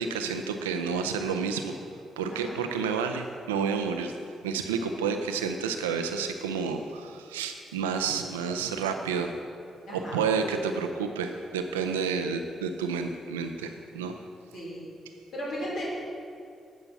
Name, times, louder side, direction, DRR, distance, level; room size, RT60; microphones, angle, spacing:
voice 1, 0.0-1.8 2.2-9.4 9.9-14.1, right 5 dB, 90° right, 6 dB, 0.5 m, -30 dB
voice 2, 9.9-10.2 14.5-14.8 15.3-16.1, equal, 65° left, -6 dB, 2.2 m, -35 dB
9.4 x 5.7 x 5.6 m, 2.4 s
hypercardioid pair, 40°, 0 cm